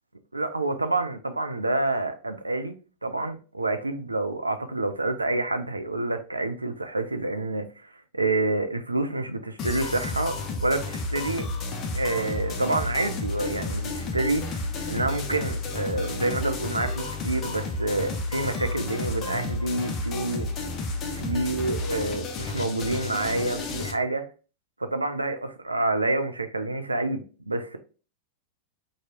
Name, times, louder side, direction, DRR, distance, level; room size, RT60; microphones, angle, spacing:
voice 1, 0.3-2.8 3.0-11.5 11.9-20.5 21.1-24.3 24.8-27.8, right 2 dB, 80° right, 0.4 m, -28 dB
sound 1, 9.6-23.9, left 3 dB, 30° left, 0.6 m, -31 dB
2.9 x 2.6 x 2.4 m
figure-of-eight pair, 90°, 0 cm